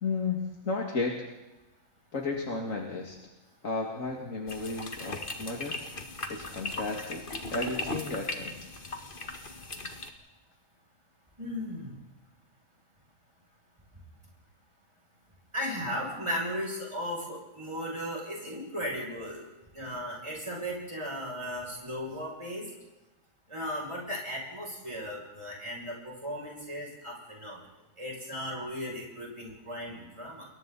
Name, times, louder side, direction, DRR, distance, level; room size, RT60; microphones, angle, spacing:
voice 1, 0.0-0.4 0.6-1.2 2.1-3.2 3.6-5.8 6.3-7.2 7.5-8.6, left 3 dB, 70° left, 0 dB, 2.7 m, -33 dB
sound 1, 4.5-10.1, left 2 dB, 40° left, 2.0 m, -38 dB
voice 2, 11.4-11.9 15.5-19.4 19.7-22.7 23.5-27.6 28.0-30.5, equal, 20° right, -2 dB, 7.2 m, -36 dB
29.5 x 22.0 x 4.2 m, 1.0 s
omnidirectional pair, 1.4 m